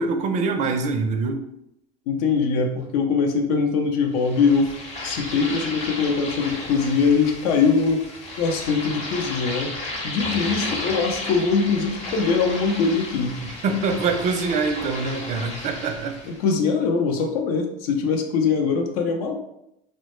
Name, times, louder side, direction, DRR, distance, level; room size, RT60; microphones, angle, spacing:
voice 1, 0.0-1.4 13.4-16.2, right 4 dB, 40° right, 5 dB, 0.4 m, -24 dB
voice 2, 2.1-4.7 5.0-8.0 8.4-9.7 10.0-13.4 16.3-19.3, left 5 dB, 75° left, 3 dB, 0.5 m, -22 dB
sound 1, 4.2-16.4, left 2 dB, 35° left, 0.7 m, -33 dB
2.1 x 2.0 x 3.0 m, 0.81 s
supercardioid pair, 105°, 19 cm